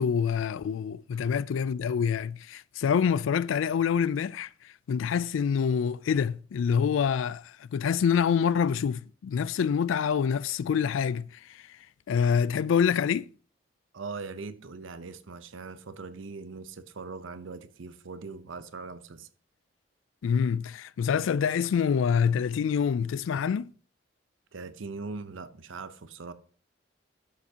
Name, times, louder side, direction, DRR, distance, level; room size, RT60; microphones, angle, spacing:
voice 1, 0.0-11.6 12.1-13.3 20.2-23.7, left 7 dB, 80° left, 0.3 m, -26 dB
voice 2, 13.9-19.3 24.5-26.3, right 4 dB, 80° right, 0.7 m, -40 dB
11.5 x 6.7 x 2.8 m
head